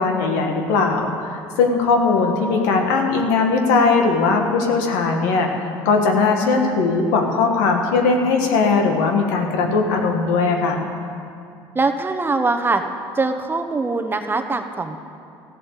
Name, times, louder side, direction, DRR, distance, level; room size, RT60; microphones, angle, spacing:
voice 1, 0.0-5.5 5.8-10.8, left 4 dB, 90° left, 3 dB, 1.6 m, -19 dB
voice 2, 2.2-2.8 11.7-12.8 13.1-15.0, right 3 dB, 20° right, 6 dB, 1.0 m, -23 dB
14.5 x 7.6 x 8.3 m, 2.4 s
supercardioid pair, 90°, 10 cm